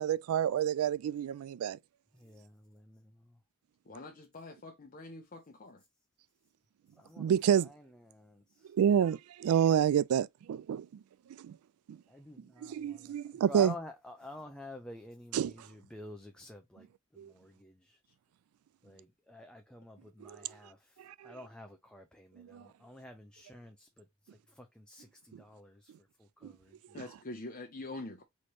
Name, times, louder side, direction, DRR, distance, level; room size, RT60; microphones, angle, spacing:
voice 1, 0.0-1.8 7.2-7.7 8.7-10.9 11.4-11.5 11.9-12.0 12.6-13.7 15.3-15.5 17.2-17.3 20.2-20.4 21.2-21.3 22.4-22.6 26.4-26.5, right 9 dB, 85° right, 0.3 m, -28 dB
voice 2, 2.1-3.4 7.0-8.7 12.1-16.9 17.1-18.0 18.8-21.0 21.2-25.9 26.2-27.1, left 2 dB, 5° left, 0.5 m, -50 dB
voice 3, 3.9-5.8 26.9-28.2, left 2 dB, 40° left, 0.8 m, -45 dB
4.3 x 3.1 x 3.1 m
head